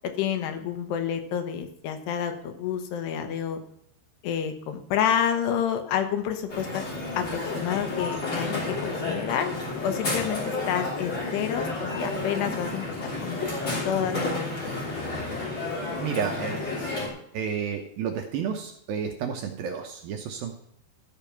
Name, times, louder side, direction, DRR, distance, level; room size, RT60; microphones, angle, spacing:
voice 1, 0.0-3.6 4.2-6.8 7.2-9.5 9.8-14.9, left 9 dB, 80° left, 7 dB, 3.0 m, -29 dB
Crowd, 6.5-17.1, left 2 dB, 30° left, 3.4 m, -31 dB
voice 2, 16.0-16.7 17.3-20.6, right 7 dB, 75° right, 3 dB, 2.3 m, -31 dB
13.5 x 5.3 x 5.8 m, 0.72 s
omnidirectional pair, 5.0 m